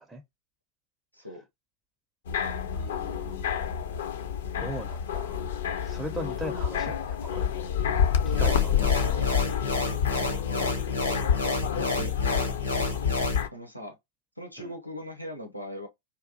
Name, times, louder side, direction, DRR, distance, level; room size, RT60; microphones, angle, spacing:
sound 1, 2.3-13.5, left 8 dB, 60° left, 0.4 m, -28 dB
voice 1, 2.7-3.6 4.6-7.7 8.2-9.3 14.6-14.7, equal, 5° right, 0.5 m, -40 dB
sound 2, 8.3-13.4, left 3 dB, 80° left, 0.8 m, -30 dB
voice 2, 8.7-9.3 11.8-12.1 13.5-14.0 14.4-15.9, equal, 90° right, 0.5 m, -40 dB
2.8 x 2.3 x 2.6 m
figure-of-eight pair, 90°, 0 cm